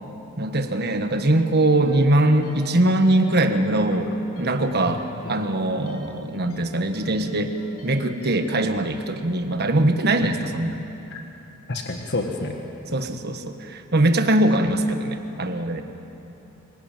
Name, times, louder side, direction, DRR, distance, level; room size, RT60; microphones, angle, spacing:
voice 1, 0.4-4.1 4.4-7.6 7.8-10.8 12.9-15.8, right 1 dB, 45° right, 7 dB, 1.4 m, -21 dB
sound 1, 1.8-8.6, equal, 90° left, 6.1 m, -44 dB
voice 2, 11.7-12.5, left 2 dB, 50° left, 2 dB, 1.6 m, -29 dB
25.5 x 17.5 x 9.1 m, 3.0 s
head